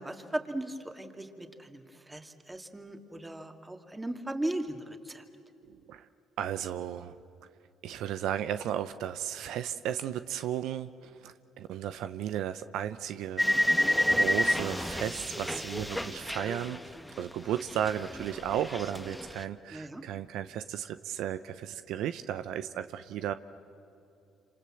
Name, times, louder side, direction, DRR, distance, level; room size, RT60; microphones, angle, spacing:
voice 1, 0.0-1.8 2.1-5.2 19.7-20.0, right 1 dB, 15° right, 5 dB, 2.6 m, -37 dB
voice 2, 5.6-6.1 6.4-7.2 7.8-13.5 14.1-16.8 17.2-23.3, right 10 dB, 75° right, 11 dB, 0.7 m, -34 dB
sound 1, 13.4-17.3 17.6-19.4, left 1 dB, 5° left, 1.5 m, -29 dB
27.5 x 26.5 x 7.8 m, 2.7 s
supercardioid pair, 60°, 0 cm